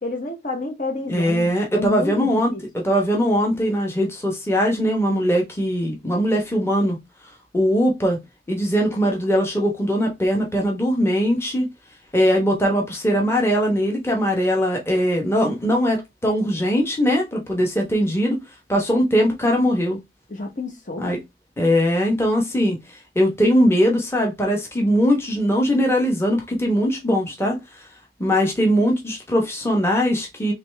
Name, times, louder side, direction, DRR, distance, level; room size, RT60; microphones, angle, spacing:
voice 1, 0.0-1.5 1.7-2.6 20.3-21.1, left 3 dB, 40° left, 0.9 m, -29 dB
voice 2, 1.1-7.0 7.5-8.2 8.5-11.7 12.1-18.4 18.7-20.0 21.0-21.2 21.6-22.8 23.1-27.6 28.2-30.5, equal, 15° left, 1.1 m, -20 dB
4.0 x 3.1 x 3.3 m
head